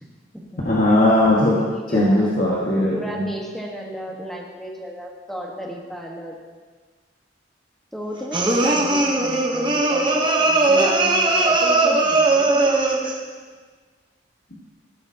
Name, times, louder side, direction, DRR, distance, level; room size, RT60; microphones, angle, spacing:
voice 1, 0.0-0.6 1.6-2.3 2.9-6.4 7.9-12.7, equal, ahead, -1 dB, 1.3 m, -34 dB
voice 2, 0.6-1.6 1.9-3.2, left 1 dB, 50° left, -7 dB, 1.7 m, -18 dB
sound 1, 8.3-13.2, right 2 dB, 25° right, 1.0 m, -19 dB
13.5 x 11.0 x 2.9 m, 1.5 s
head